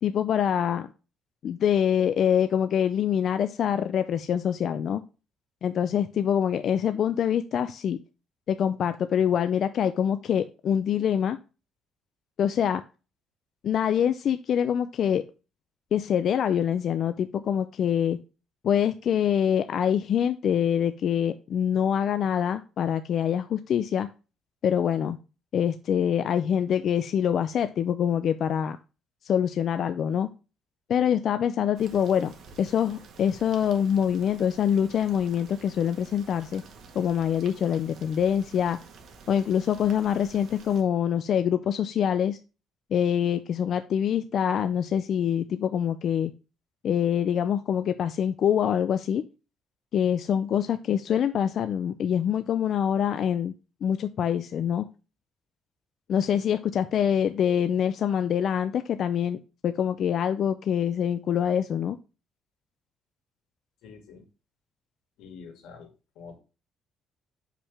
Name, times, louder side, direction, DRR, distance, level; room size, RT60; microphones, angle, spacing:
voice 1, 0.0-0.9 1.4-5.0 5.6-8.0 8.5-11.4 12.4-12.8 13.6-15.2 15.9-18.2 18.6-24.1 24.6-25.2 25.5-28.8 29.2-30.3 30.9-32.3 32.6-36.6 36.9-38.8 39.3-42.4 42.9-46.3 46.8-49.2 49.9-53.5 53.8-54.9 56.1-62.0, left 9 dB, 50° left, 10 dB, 0.4 m, -25 dB
sound 1, 31.7-40.8, right 5 dB, 55° right, 1.6 m, -50 dB
voice 2, 63.8-64.2 65.2-66.4, left 5 dB, 85° left, 4 dB, 2.5 m, -46 dB
6.5 x 5.8 x 3.4 m, 0.32 s
cardioid pair, 160°, 0 cm